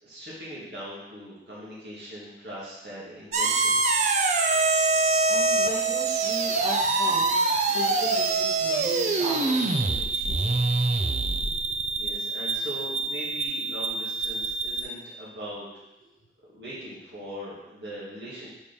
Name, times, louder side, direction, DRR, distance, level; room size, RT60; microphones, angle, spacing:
voice 1, 0.0-3.8 12.0-15.7 16.5-18.5, equal, 65° right, -8 dB, 2.1 m, -40 dB
sound 1, 3.3-14.8, right 3 dB, 40° right, 0.5 m, -25 dB
voice 2, 5.3-7.3 7.7-10.5 11.0-11.5, right 1 dB, 25° right, -10 dB, 2.4 m, -37 dB
5.2 x 4.4 x 5.2 m, 0.97 s
head